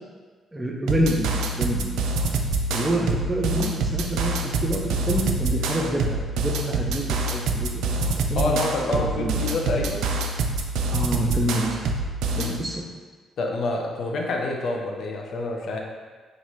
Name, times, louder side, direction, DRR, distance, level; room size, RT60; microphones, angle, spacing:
voice 1, 0.5-1.9 2.7-8.0 8.3-9.4 10.9-12.0 12.4-12.8, right 1 dB, 20° right, 0 dB, 0.7 m, -27 dB
sound 1, 0.9-12.6, right 2 dB, 65° right, 0.3 m, -26 dB
voice 2, 8.4-10.1 12.3-12.6 13.4-15.8, left 2 dB, 55° left, 0 dB, 0.6 m, -27 dB
3.7 x 3.1 x 3.1 m, 1.4 s
figure-of-eight pair, 40°, 0 cm